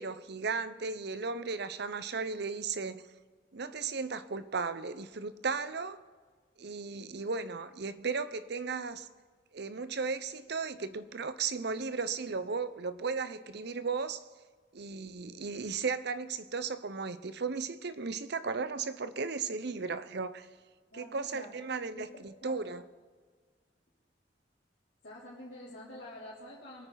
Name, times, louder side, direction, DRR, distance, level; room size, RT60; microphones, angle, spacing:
voice 1, 0.0-3.1 3.5-6.0 6.6-9.1 9.5-14.2 14.7-20.5 20.9-22.8, right 4 dB, 65° right, 0.8 m, -35 dB
voice 2, 20.9-21.5 21.9-22.6 25.0-26.9, left 1 dB, 70° left, 3.4 m, -47 dB
22.5 x 9.2 x 4.0 m
head